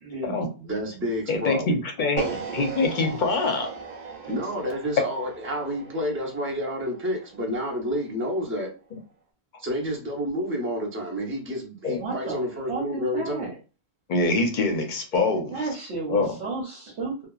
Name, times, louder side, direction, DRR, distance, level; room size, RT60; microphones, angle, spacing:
voice 1, 0.0-0.3 12.0-12.4 12.7-13.6 15.5-17.3, right 3 dB, 85° right, -3 dB, 1.1 m, -32 dB
voice 2, 0.6-1.7 4.3-8.7 9.6-13.5, equal, 15° right, -2 dB, 0.6 m, -29 dB
voice 3, 1.3-3.7 11.8-12.0 14.1-15.6 16.1-16.4, left 3 dB, 55° left, 4 dB, 0.7 m, -24 dB
sound 1, 2.2-8.3, right 5 dB, 55° right, 0.6 m, -37 dB
2.7 x 2.3 x 2.3 m, 0.34 s
omnidirectional pair, 1.1 m